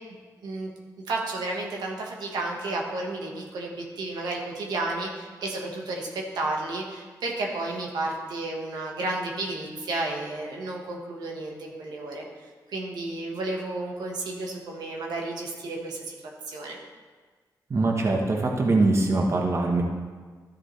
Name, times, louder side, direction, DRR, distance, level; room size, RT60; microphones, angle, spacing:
voice 1, 1.0-12.3 12.7-16.2 16.5-16.8, right 2 dB, 90° right, -1 dB, 1.5 m, -32 dB
voice 2, 17.7-19.8, right 2 dB, 45° right, 0 dB, 1.2 m, -23 dB
13.0 x 7.3 x 3.3 m, 1.5 s
cardioid pair, 105°, 7 cm